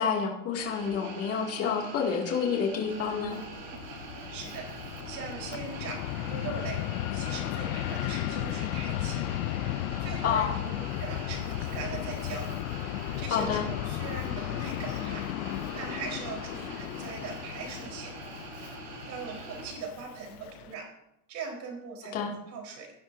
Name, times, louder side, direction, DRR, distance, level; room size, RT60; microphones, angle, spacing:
voice 1, 0.0-3.4 10.2-10.6 13.3-13.7 22.1-22.3, left 6 dB, 35° left, -1 dB, 2.4 m, -29 dB
sound 1, 0.6-19.7, right 4 dB, 85° right, 4.4 m, -44 dB
Fixed-wing aircraft airplane, 2.9-20.7, left 15 dB, 80° left, 0.6 m, -35 dB
voice 2, 4.3-4.7 5.1-6.8 7.1-9.4 9.7-12.5 13.2-15.3 15.7-18.1 19.1-20.9 21.3-22.9, right 5 dB, 40° right, 0 dB, 4.3 m, -40 dB
17.5 x 10.5 x 2.7 m, 0.87 s
supercardioid pair, 145°, 43 cm